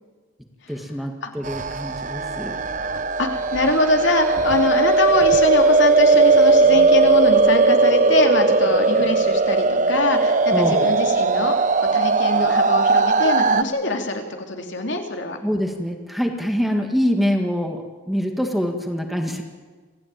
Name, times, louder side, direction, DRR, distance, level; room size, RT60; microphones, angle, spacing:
voice 1, 0.7-2.6 10.5-10.9 15.4-19.4, equal, ahead, 3 dB, 1.7 m, -25 dB
sound 1, 1.4-13.6, right 3 dB, 40° right, 0.7 m, -18 dB
voice 2, 2.8-15.4, left 2 dB, 65° left, 3 dB, 2.9 m, -24 dB
26.5 x 15.5 x 9.1 m, 1.4 s
head